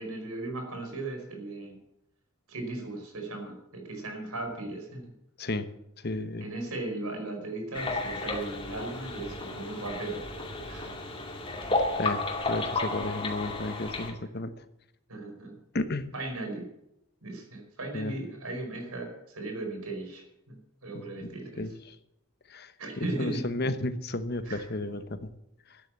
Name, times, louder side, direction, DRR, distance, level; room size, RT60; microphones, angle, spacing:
voice 1, 0.0-1.8 2.5-5.1 6.4-10.2 10.7-11.1 15.1-15.6 16.1-16.7 17.2-21.6 22.8-23.4 24.4-24.7, right 2 dB, 85° right, 4 dB, 4.9 m, -37 dB
voice 2, 6.0-6.5 12.0-14.5 15.7-16.1 17.9-18.2 20.9-22.0 22.5-22.7 23.0-25.3, left 2 dB, 45° left, 11 dB, 1.1 m, -33 dB
sound 1, 7.7-14.1, left 2 dB, 25° left, 2.3 m, -33 dB
13.0 x 10.5 x 7.6 m, 0.82 s
head